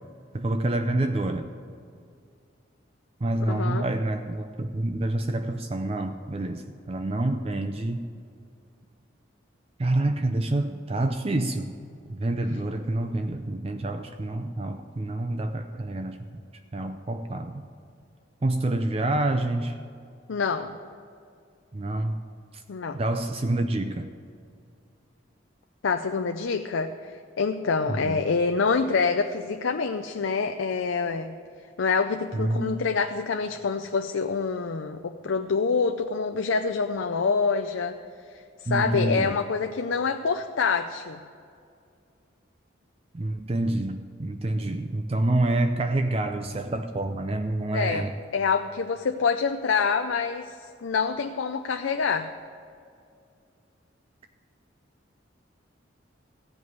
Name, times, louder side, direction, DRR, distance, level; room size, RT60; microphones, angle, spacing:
voice 1, 0.3-1.5 3.2-8.0 9.8-11.7 12.1-16.2 16.7-17.6 18.4-19.8 21.7-22.2 22.9-24.1 27.9-28.2 32.3-32.7 38.7-39.3 43.1-48.1, right 1 dB, 30° right, 7 dB, 0.5 m, -27 dB
voice 2, 3.5-3.8 20.3-20.8 22.7-23.0 25.8-31.3 31.8-38.0 38.6-41.2 47.7-48.1 48.3-50.5 50.8-52.3, left 5 dB, 85° left, 6 dB, 0.5 m, -26 dB
15.5 x 5.3 x 9.5 m, 2.4 s
head